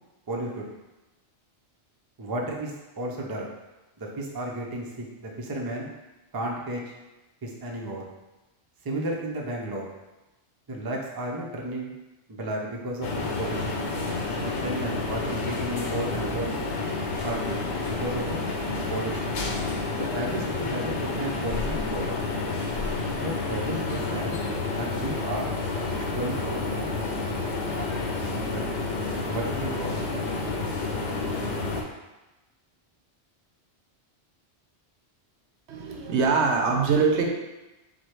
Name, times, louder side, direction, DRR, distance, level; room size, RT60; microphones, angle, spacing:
voice 1, 0.3-0.7 2.2-3.5 4.0-5.9 6.3-6.9 7.4-8.0 8.8-9.9 10.7-11.9 12.3-13.8 14.3-16.7 17.2-17.6 17.8-18.4 18.9-19.4 20.1-22.2 23.2-24.4 24.8-25.5 25.9-27.2 28.5-28.7 29.3-30.0, right 1 dB, 30° right, -1 dB, 0.4 m, -33 dB
sound 1, 13.0-31.8, left 3 dB, 85° left, 1.0 m, -29 dB
voice 2, 35.7-37.3, right 4 dB, 85° right, 1 dB, 1.0 m, -23 dB
4.8 x 2.2 x 4.4 m, 1.1 s
omnidirectional pair, 1.1 m